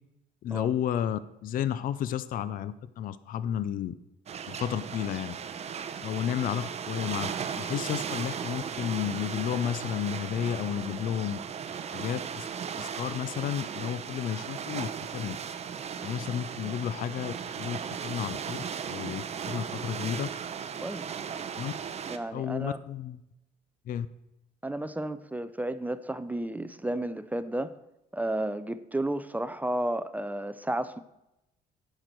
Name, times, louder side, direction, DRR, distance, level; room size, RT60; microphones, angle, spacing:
voice 1, 0.4-4.0 4.5-5.4 6.0-7.3 7.6-11.4 11.9-12.5 12.8-15.4 16.0-20.3 21.6-21.7 22.3-23.2 23.9-24.1, left 10 dB, 55° left, 15 dB, 0.5 m, -32 dB
sound 1, 4.3-22.2, right 7 dB, 40° right, 0.7 m, -36 dB
voice 2, 22.1-22.8 24.6-27.7 28.1-31.0, right 1 dB, 10° right, 12 dB, 0.4 m, -32 dB
10.0 x 6.7 x 4.5 m, 0.89 s
cardioid pair, 110°, 17 cm